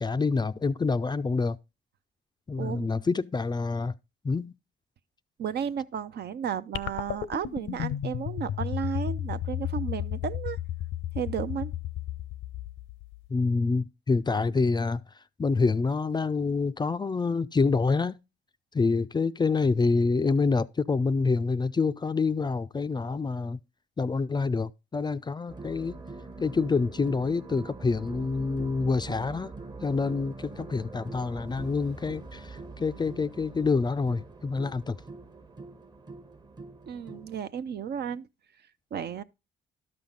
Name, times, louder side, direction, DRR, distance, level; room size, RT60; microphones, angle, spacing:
voice 1, 0.0-1.6 2.5-3.9 4.2-4.5 13.3-15.0 15.4-18.2 18.7-23.6 24.0-26.0 26.4-29.5 29.8-35.0, left 4 dB, 20° left, 0.4 m, -27 dB
voice 2, 2.6-2.9 5.4-10.6 11.1-11.7 36.9-38.3 38.9-39.2, right 8 dB, 55° right, 0.6 m, -33 dB
sound 1, 6.7-13.3, left 11 dB, 75° left, 0.6 m, -33 dB
sound 2, 25.5-37.4, right 3 dB, 20° right, 0.9 m, -43 dB
12.0 x 5.8 x 3.8 m
cardioid pair, 90°, 20 cm